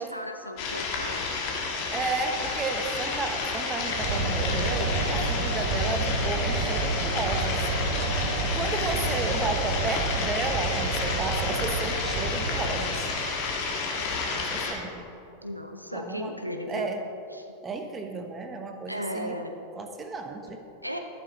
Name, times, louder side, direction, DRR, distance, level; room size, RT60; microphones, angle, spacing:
voice 1, 0.0-1.3 15.4-16.9 17.3-17.5 18.9-19.5 20.8-21.0, equal, 90° right, 5 dB, 0.8 m, -36 dB
sound 1, 0.6-14.7, left 4 dB, 45° left, 1.9 m, -31 dB
voice 2, 1.9-7.6 8.4-13.1 14.3-15.1 15.9-16.3 16.7-17.0 17.6-19.3 19.8-20.7, right 3 dB, 20° right, 5 dB, 1.1 m, -33 dB
sound 2, 3.9-13.2, right 3 dB, 45° right, 2.8 m, -30 dB
12.5 x 11.0 x 4.2 m, 2.7 s
figure-of-eight pair, 90°, 0 cm